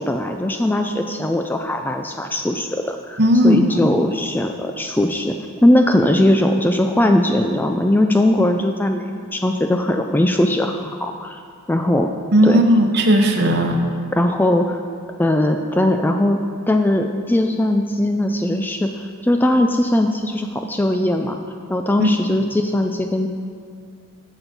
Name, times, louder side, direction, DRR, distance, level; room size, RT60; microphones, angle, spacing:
voice 1, 0.0-9.1 9.3-11.4 11.7-12.1 12.4-12.6 14.1-14.8 15.2-16.4 16.7-21.4 21.7-23.3, left 1 dB, 10° left, 4 dB, 0.3 m, -19 dB
voice 2, 3.2-3.7 12.3-13.8 22.0-22.1, equal, 50° right, 4 dB, 0.9 m, -15 dB
9.1 x 7.1 x 5.9 m, 2.2 s
head